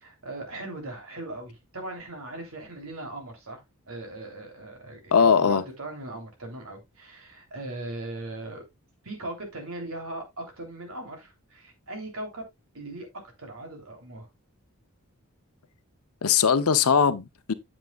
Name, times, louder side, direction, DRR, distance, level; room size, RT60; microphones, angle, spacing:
voice 1, 0.0-3.6 3.9-8.6 9.0-12.4 12.7-14.3, right 2 dB, 70° right, 3.3 m, -39 dB
voice 2, 5.1-5.6 16.2-17.5, left 6 dB, 80° left, 0.8 m, -20 dB
9.4 x 7.5 x 2.4 m
head